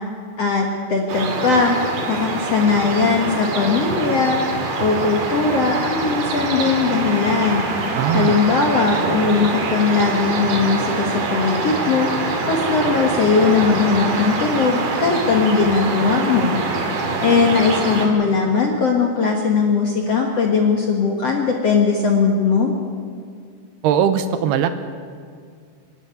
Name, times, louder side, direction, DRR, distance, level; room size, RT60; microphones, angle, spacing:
voice 1, 0.4-1.7 2.1-7.6 8.1-16.6 17.2-22.7, left 5 dB, 60° left, 1 dB, 1.7 m, -19 dB
sound 1, 1.1-18.1, right 3 dB, 60° right, 4.2 m, -24 dB
voice 2, 8.0-8.4 23.8-24.7, right 8 dB, 80° right, 10 dB, 2.7 m, -19 dB
26.0 x 12.0 x 9.4 m, 2.1 s
omnidirectional pair, 4.9 m